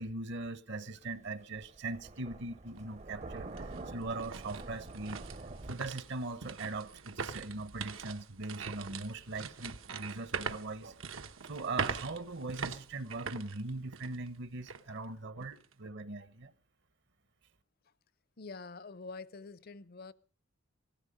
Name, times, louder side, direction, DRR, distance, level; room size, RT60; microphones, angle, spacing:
voice 1, 0.0-5.2 5.7-16.5, right 2 dB, 60° right, 1.0 m, -40 dB
Thunder, 0.7-5.7, right 2 dB, 35° right, 0.7 m, -46 dB
sound 1, 2.8-2.9 3.4-14.3 14.7-14.8 15.4-15.7, right 5 dB, 80° right, 1.0 m, -42 dB
voice 2, 18.4-20.1, left 4 dB, 50° left, 0.6 m, -46 dB
16.5 x 14.0 x 5.1 m
head